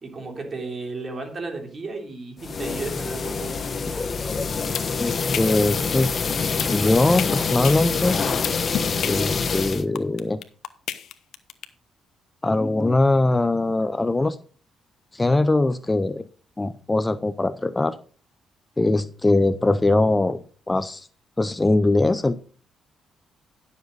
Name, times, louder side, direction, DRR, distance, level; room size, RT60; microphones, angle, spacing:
voice 1, 0.0-3.5, right 3 dB, 35° right, 2 dB, 3.3 m, -34 dB
sound 1, 2.4-9.8, left 5 dB, 40° left, 0.9 m, -26 dB
voice 2, 3.9-4.4 5.0-6.2 6.7-8.2 9.0-10.4 12.4-14.4 15.1-16.2 16.6-18.0 18.8-20.4 20.7-21.1 21.4-22.5, left 2 dB, 15° left, 14 dB, 0.5 m, -21 dB
sound 2, 4.6-11.6, left 10 dB, 70° left, 0.9 m, -30 dB
11.0 x 7.3 x 4.0 m, 0.41 s
cardioid pair, 90°, 0 cm